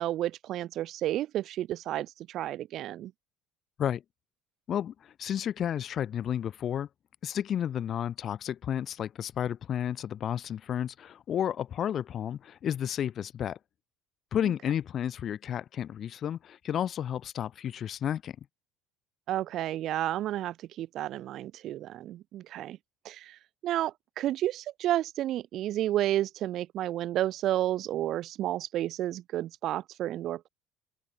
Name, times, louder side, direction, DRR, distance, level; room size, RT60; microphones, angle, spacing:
voice 1, 0.0-3.1 19.3-22.8 23.0-30.5, right 13 dB, 50° right, 0.5 m, -31 dB
voice 2, 4.7-6.9 7.2-13.6 14.3-18.4, left 9 dB, 40° left, 0.3 m, -32 dB
open air
cardioid pair, 140°, 0 cm